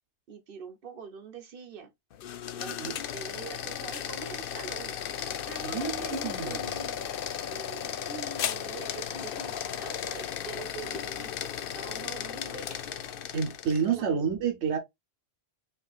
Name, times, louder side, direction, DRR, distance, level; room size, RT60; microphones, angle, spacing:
voice 1, 0.3-1.9 2.6-7.1 7.5-12.8 13.8-14.4, right 5 dB, 60° right, 1.0 m, -44 dB
sound 1, 2.1-13.9, left 9 dB, 60° left, 0.7 m, -35 dB
voice 2, 5.6-6.6 13.3-14.8, right 6 dB, 85° right, 1.2 m, -29 dB
sound 2, 8.7-13.8, left 5 dB, 85° left, 1.2 m, -49 dB
5.5 x 3.2 x 2.3 m
omnidirectional pair, 1.1 m